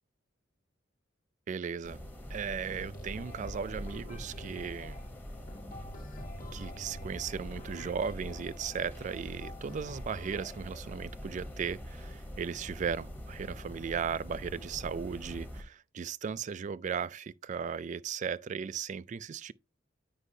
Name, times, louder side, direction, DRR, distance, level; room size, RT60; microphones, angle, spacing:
voice 1, 1.5-2.0 2.3-5.0 6.5-19.5, right 6 dB, 40° right, 0.3 m, -36 dB
sound 1, 1.8-15.6, equal, 10° left, 1.0 m, -44 dB
sound 2, 2.7-10.6, left 1 dB, 45° left, 1.3 m, -49 dB
9.8 x 5.4 x 2.7 m
head